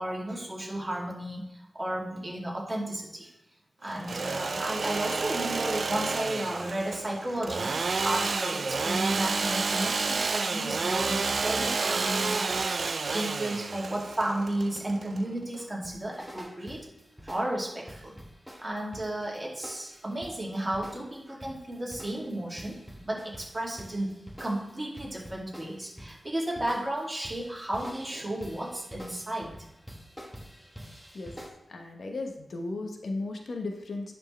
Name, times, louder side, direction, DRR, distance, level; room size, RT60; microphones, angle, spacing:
voice 1, 0.0-3.3 3.8-12.6 13.1-16.9 17.2-18.2 18.5-29.5, right 1 dB, 25° right, -3 dB, 2.5 m, -33 dB
Engine / Sawing, 3.9-15.6, right 4 dB, 65° right, 0.4 m, -30 dB
sound 1, 15.6-31.5, equal, ahead, 1.4 m, -47 dB
voice 2, 31.7-34.1, left 2 dB, 75° left, 3 dB, 1.0 m, -35 dB
10.5 x 4.4 x 3.3 m, 0.88 s
cardioid pair, 65°, 0 cm